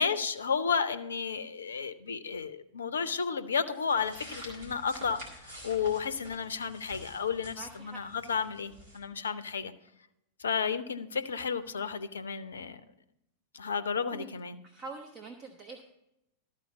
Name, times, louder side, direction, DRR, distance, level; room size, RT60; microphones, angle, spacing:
voice 1, 0.0-5.2 5.6-9.7 10.4-12.8 13.5-14.6, left 6 dB, 70° left, 12 dB, 0.5 m, -32 dB
sound 1, 3.9-9.0, equal, 60° right, 2.4 m, -48 dB
voice 2, 7.6-8.0 13.8-13.9 14.1-14.3 14.6-15.8, right 3 dB, 30° right, 4 dB, 0.8 m, -45 dB
12.5 x 4.4 x 7.1 m, 0.84 s
figure-of-eight pair, 90°, 0 cm